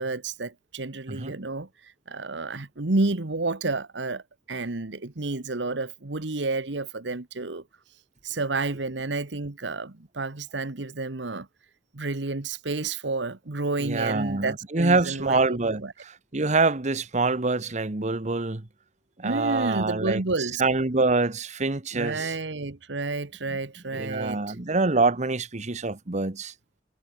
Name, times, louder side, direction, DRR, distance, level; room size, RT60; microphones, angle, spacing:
voice 1, 0.0-4.2 4.5-7.6 8.2-11.5 11.9-15.4 15.8-15.9 19.2-20.6 21.9-24.6, right 3 dB, 80° right, 1.4 m, -30 dB
voice 2, 13.8-18.7 19.2-22.3 23.9-26.5, right 3 dB, 40° right, 1.2 m, -25 dB
head